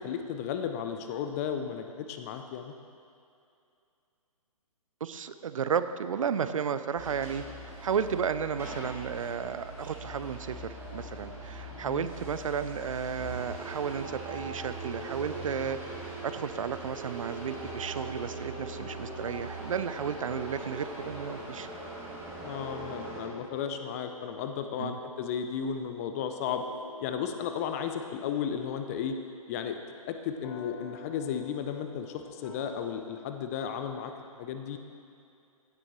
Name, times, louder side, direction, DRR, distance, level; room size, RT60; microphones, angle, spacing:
voice 1, 0.0-2.7 11.8-12.1 22.4-26.6 27.0-29.2 29.5-29.8 30.0-34.1 34.4-34.8, left 8 dB, 25° left, 7 dB, 0.5 m, -34 dB
voice 2, 5.0-7.4 7.8-15.8 16.0-21.7 24.8-25.0, right 7 dB, 65° right, 12 dB, 0.5 m, -33 dB
sound 1, 6.9-23.2, right 2 dB, 15° right, 2.3 m, -41 dB
sound 2, 14.9-18.2 18.4-32.9, left 4 dB, 60° left, 1.4 m, -50 dB
15.5 x 7.9 x 3.0 m, 2.5 s
figure-of-eight pair, 135°, 19 cm